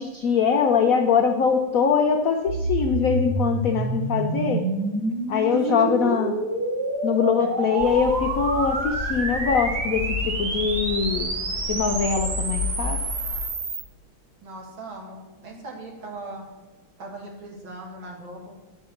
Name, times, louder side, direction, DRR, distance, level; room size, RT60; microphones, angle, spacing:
voice 1, 0.0-4.6 5.3-6.3 7.0-11.3 11.7-13.0, left 6 dB, 75° left, 4 dB, 0.7 m, -22 dB
sound 1, 2.5-13.8, right 3 dB, 55° right, 1.7 m, -28 dB
voice 2, 5.5-5.9 6.3-6.4 7.4-7.7 14.4-16.5 17.0-18.5, right 2 dB, 70° right, 0 dB, 2.7 m, -39 dB
sound 2, 7.8-13.5, left 6 dB, 30° right, 2.2 m, -33 dB
10.0 x 4.6 x 7.0 m, 1.2 s
omnidirectional pair, 2.2 m